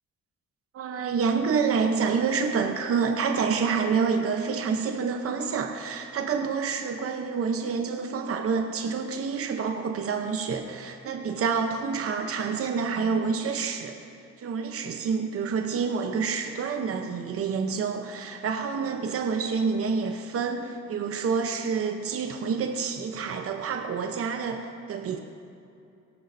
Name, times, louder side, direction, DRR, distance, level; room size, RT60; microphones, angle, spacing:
voice 1, 0.7-14.1 14.4-25.2, right 5 dB, 50° right, 5 dB, 0.8 m, -28 dB
17.5 x 11.5 x 2.6 m, 2.6 s
cardioid pair, 90°, 30 cm